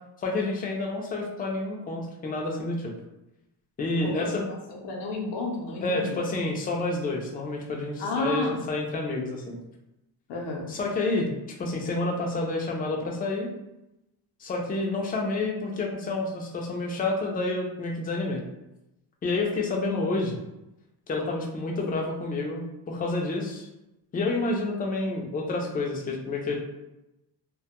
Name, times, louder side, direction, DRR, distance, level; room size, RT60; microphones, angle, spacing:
voice 1, 0.2-2.9 3.8-4.4 5.8-9.6 10.7-11.3 11.6-13.5 14.4-18.4 19.2-20.4 21.1-23.7 24.1-26.7, left 2 dB, 20° left, 0 dB, 0.4 m, -29 dB
voice 2, 4.0-6.2 8.0-8.5 10.3-10.7, left 2 dB, 75° left, -1 dB, 0.6 m, -32 dB
2.2 x 2.1 x 2.8 m, 0.93 s
cardioid pair, 110°, 42 cm